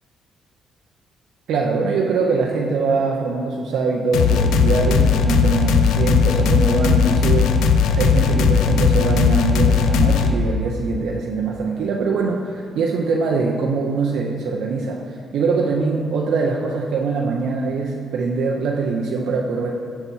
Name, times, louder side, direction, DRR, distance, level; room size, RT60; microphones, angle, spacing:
voice 1, 1.5-7.5 8.0-19.7, right 4 dB, 75° right, -1 dB, 0.6 m, -22 dB
sound 1, 4.1-10.3, left 6 dB, 85° left, 0.4 m, -17 dB
5.8 x 4.3 x 5.3 m, 2.3 s
cardioid pair, 90°, 0 cm